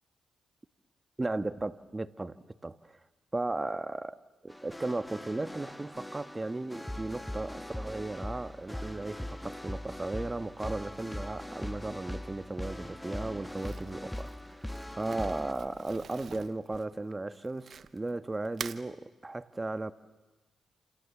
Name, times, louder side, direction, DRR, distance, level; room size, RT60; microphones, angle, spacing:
voice 1, 1.2-2.4 2.6-3.0 3.3-19.9, right 2 dB, 25° right, 1.5 m, -36 dB
music game title, 4.5-15.5, left 1 dB, 10° left, 1.5 m, -41 dB
Crumpling crinkling, 13.5-18.1 18.5-18.8, right 7 dB, 65° right, 0.9 m, -45 dB
29.0 x 27.5 x 7.3 m
supercardioid pair, 50°, 0 cm